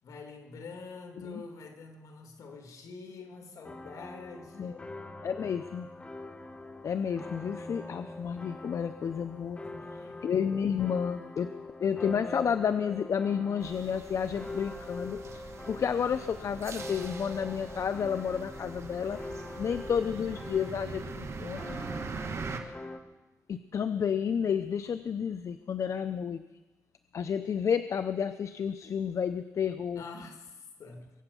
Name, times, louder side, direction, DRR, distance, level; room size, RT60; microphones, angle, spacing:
voice 1, 0.0-4.8 9.6-10.2 22.1-22.8 30.0-31.1, left 3 dB, 75° left, 3 dB, 2.7 m, -46 dB
sound 1, 3.6-23.0, left 2 dB, 20° left, 1.3 m, -43 dB
voice 2, 5.2-5.9 6.8-9.6 10.2-11.5 11.8-19.2 19.6-21.8 23.5-26.4 27.1-30.0, left 7 dB, 60° left, 11 dB, 0.6 m, -31 dB
sound 2, 13.6-22.6, right 5 dB, 50° right, 1.5 m, -42 dB
23.5 x 8.0 x 6.9 m, 1.1 s
cardioid pair, 95°, 6 cm